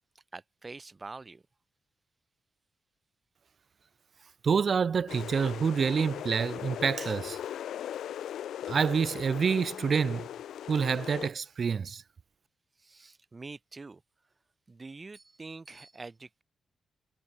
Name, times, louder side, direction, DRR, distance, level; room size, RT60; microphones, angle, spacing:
voice 1, 0.1-1.4 12.8-14.0 14.7-16.4, right 3 dB, 25° right, 4.2 m, -45 dB
voice 2, 4.4-7.4 8.7-10.3 10.7-12.0, right 6 dB, 50° right, 0.3 m, -27 dB
sound 1, 5.1-11.3, left 10 dB, 85° left, 0.5 m, -39 dB
cardioid pair, 110°, 0 cm